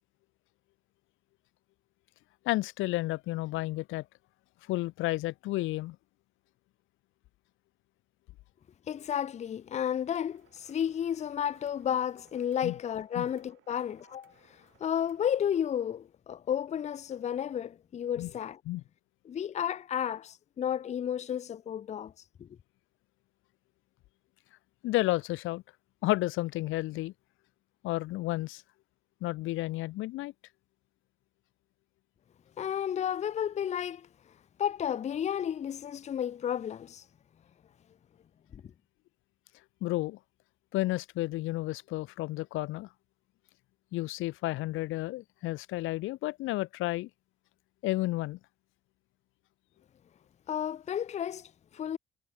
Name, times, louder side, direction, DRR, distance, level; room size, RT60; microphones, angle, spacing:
voice 1, 2.5-4.0 4.7-6.0 12.6-12.7 13.2-13.3 18.2-18.3 18.7-18.8 24.8-25.6 26.0-27.1 27.8-28.6 29.2-30.3 39.8-40.2 40.7-42.9 43.9-47.1 47.8-48.4, left 18 dB, 85° left, 0.5 m, -31 dB
voice 2, 8.9-18.6 19.3-22.1 22.4-22.5 32.6-34.1 34.6-37.0 38.5-38.6 50.5-52.0, left 9 dB, 35° left, 0.4 m, -32 dB
sound 1, 10.2-15.3, right 13 dB, 85° right, 6.2 m, -65 dB
cardioid pair, 90°, 20 cm